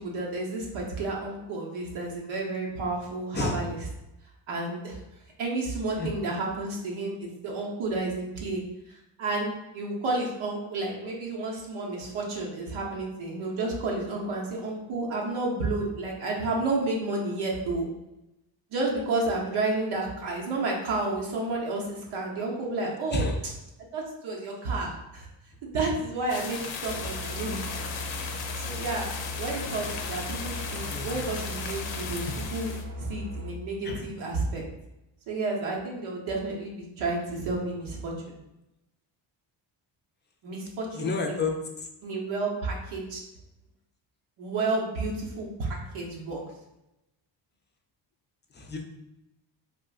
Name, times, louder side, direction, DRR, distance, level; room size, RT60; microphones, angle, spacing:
voice 1, 0.0-3.8 4.5-5.0 5.4-8.6 9.2-17.9 18.7-23.3 23.9-25.3 25.6-27.7 28.6-29.1 29.4-32.2 32.5-32.7 33.0-34.6 35.3-38.4 40.4-41.4 42.0-43.2 44.4-46.4, right 2 dB, 80° right, -2 dB, 0.9 m, -31 dB
sound 1, 26.3-32.8, left 5 dB, 65° left, 0.6 m, -36 dB
sound 2, 26.9-33.5, left 1 dB, 30° right, 0.7 m, -38 dB
voice 2, 30.8-31.2 33.8-34.1 40.9-41.9 48.5-48.8, left 3 dB, 25° left, 3 dB, 0.5 m, -30 dB
3.6 x 2.5 x 2.3 m, 0.92 s
cardioid pair, 80°, 48 cm